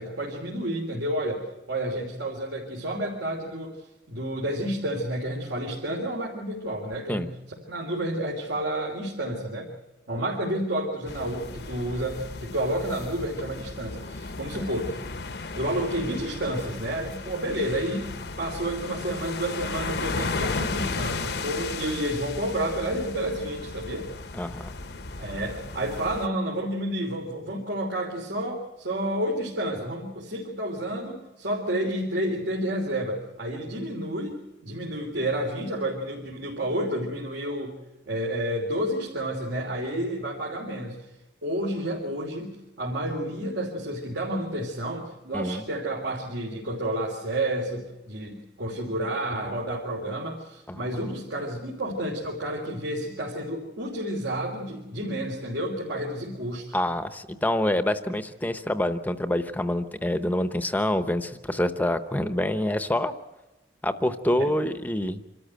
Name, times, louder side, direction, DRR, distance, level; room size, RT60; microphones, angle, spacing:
voice 1, 0.0-3.8 4.1-9.7 10.1-15.0 15.5-24.1 25.2-37.8 38.1-41.0 41.4-56.8 64.4-64.5, right 1 dB, 80° right, -2 dB, 3.4 m, -30 dB
sound 1, 11.1-26.3, left 3 dB, 60° left, 0.9 m, -35 dB
voice 2, 24.3-24.7 45.3-45.6 50.7-51.1 56.7-63.1 63.8-65.2, left 1 dB, 10° left, 10 dB, 0.8 m, -26 dB
26.0 x 13.5 x 9.1 m, 1.0 s
head